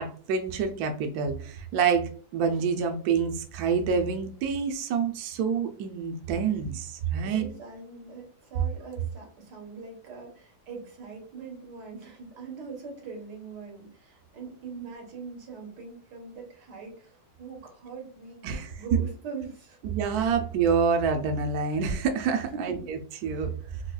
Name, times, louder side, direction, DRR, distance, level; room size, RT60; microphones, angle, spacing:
voice 1, 0.0-7.4 18.4-18.7 19.8-23.8, right 6 dB, 75° right, 5 dB, 1.0 m, -27 dB
voice 2, 7.2-19.8 22.5-22.9 23.3-23.4, right 4 dB, 90° right, 0 dB, 1.8 m, -42 dB
4.7 x 2.2 x 2.3 m, 0.43 s
omnidirectional pair, 1.8 m